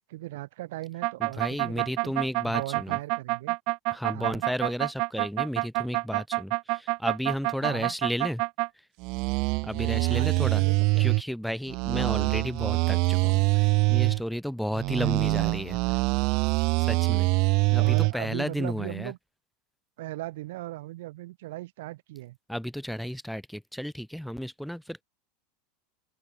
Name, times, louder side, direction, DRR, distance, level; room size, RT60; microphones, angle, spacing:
voice 1, 0.1-2.1 2.4-3.6 4.1-4.4 7.6-7.9 10.0-11.2 14.9-15.3 17.8-19.2 20.0-22.4, right 18 dB, 70° right, 7.9 m, -38 dB
sound 1, 1.0-8.7 9.0-11.2 11.7-14.2 14.7-18.1, right 28 dB, 45° right, 0.6 m, -25 dB
voice 2, 1.2-3.0 3.9-8.4 9.6-10.6 11.0-15.8 16.8-17.3 17.7-19.1 22.5-25.0, equal, ahead, 2.1 m, -33 dB
open air
supercardioid pair, 160°, 0 cm